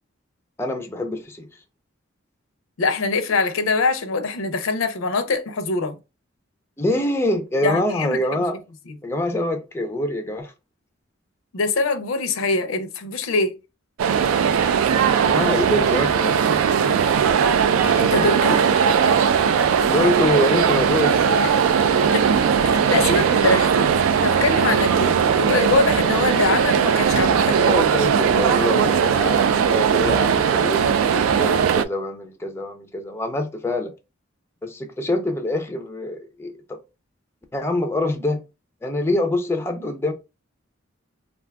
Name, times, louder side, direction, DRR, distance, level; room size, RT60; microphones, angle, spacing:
voice 1, 0.6-1.5 6.8-8.6 9.0-10.5 15.1-16.6 16.9-17.0 19.8-21.3 27.5-33.9 34.6-36.8 37.5-38.4 38.8-40.1, left 1 dB, 10° left, 0.3 m, -25 dB
voice 2, 2.8-6.0 7.6-8.2 11.5-13.5 17.8-18.6 22.1-22.3 22.6-27.6, left 3 dB, 85° left, 0.5 m, -23 dB
sound 1, 14.0-31.9, right 7 dB, 85° right, 0.3 m, -19 dB
2.5 x 2.3 x 3.4 m
head